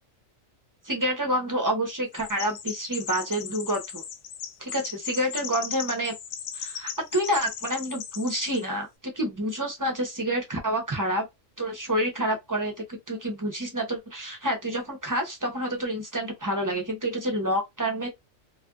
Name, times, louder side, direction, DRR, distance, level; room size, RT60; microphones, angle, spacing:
voice 1, 0.8-4.0 4.6-6.1 6.5-8.9 9.1-11.3 11.6-18.1, right 1 dB, 20° right, 0.6 m, -28 dB
Chirp tweet, 2.1-8.7, left 8 dB, 65° left, 0.7 m, -37 dB
2.6 x 2.5 x 2.3 m
omnidirectional pair, 1.4 m